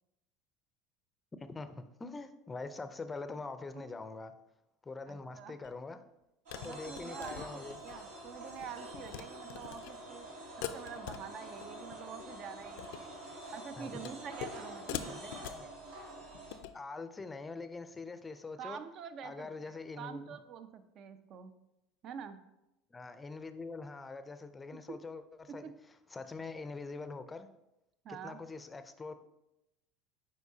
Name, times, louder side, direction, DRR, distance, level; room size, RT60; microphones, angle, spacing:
voice 1, 1.4-4.3 4.8-6.0 6.6-7.8 13.8-14.1 15.1-15.7 16.7-18.8 19.2-20.2 22.9-25.7 26.1-27.5 28.1-29.2, left 3 dB, 15° left, 10 dB, 0.5 m, -44 dB
voice 2, 5.1-5.6 6.5-10.3 10.6-13.1 13.5-15.0 18.6-21.5 22.0-22.4 24.7-25.0 25.6-25.7 28.0-28.4, right 7 dB, 50° right, 10 dB, 0.6 m, -47 dB
sound 1, 5.6-5.7 6.5-8.0 8.3-8.7 8.9-9.2 9.5-9.9 10.6-11.7 11.9-12.2 12.6-13.1 14.0-14.6 14.9-15.7 16.3-16.8, left 11 dB, 75° left, 0.4 m, -43 dB
sound 2, 6.5-16.6, right 1 dB, 85° right, 2.4 m, -47 dB
8.2 x 4.5 x 2.8 m, 0.90 s
supercardioid pair, 110°, 0 cm